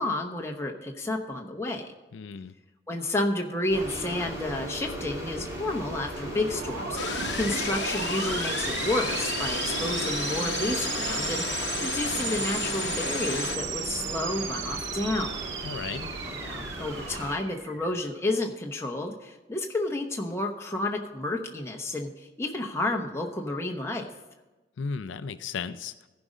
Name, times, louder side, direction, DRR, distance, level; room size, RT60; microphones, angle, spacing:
voice 1, 0.0-1.9 2.9-7.0 7.3-15.4 16.4-24.1, left 2 dB, 15° left, 1 dB, 1.0 m, -31 dB
voice 2, 2.1-2.5 15.6-16.1 24.8-25.9, left 5 dB, 90° left, 13 dB, 0.4 m, -35 dB
sound 1, 3.7-17.4, equal, 15° right, 2.7 m, -37 dB
sound 2, 6.5-18.2, right 7 dB, 80° right, 0.7 m, -35 dB
sound 3, 7.0-13.6, left 6 dB, 70° left, 0.8 m, -33 dB
15.0 x 5.3 x 5.0 m, 1.1 s
head